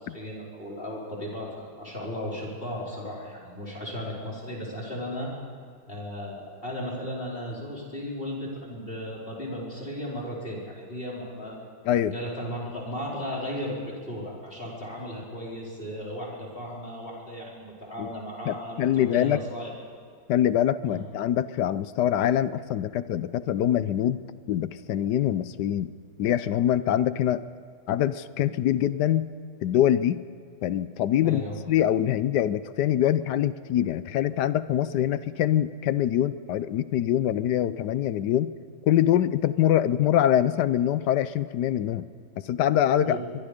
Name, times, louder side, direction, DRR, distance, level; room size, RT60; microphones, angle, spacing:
voice 1, 0.0-5.3 5.9-11.6 12.0-19.7 20.8-21.0 31.2-31.6 43.0-43.2, equal, 25° left, -4 dB, 4.9 m, -35 dB
voice 2, 18.5-19.4 20.3-24.2 24.5-25.9 26.2-27.4 27.9-29.3 29.6-30.2 30.6-38.5 38.9-42.0 42.4-43.2, left 11 dB, 70° left, 15 dB, 1.1 m, -24 dB
24.0 x 22.5 x 5.1 m, 2.2 s
omnidirectional pair, 2.3 m